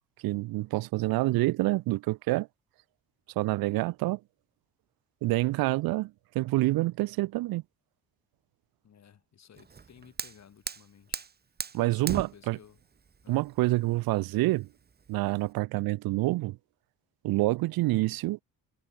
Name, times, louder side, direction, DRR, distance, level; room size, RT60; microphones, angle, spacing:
voice 1, 0.2-2.5 3.4-4.2 5.2-7.6 11.7-12.6 13.3-14.7 15.1-16.6 17.2-18.4, right 19 dB, 85° right, 0.5 m, -27 dB
voice 2, 8.8-11.3 11.7-12.8 13.2-13.9, left 8 dB, 50° left, 4.3 m, -56 dB
Fire, 9.6-15.5, right 5 dB, 25° right, 1.5 m, -40 dB
cardioid pair, 130°, 35 cm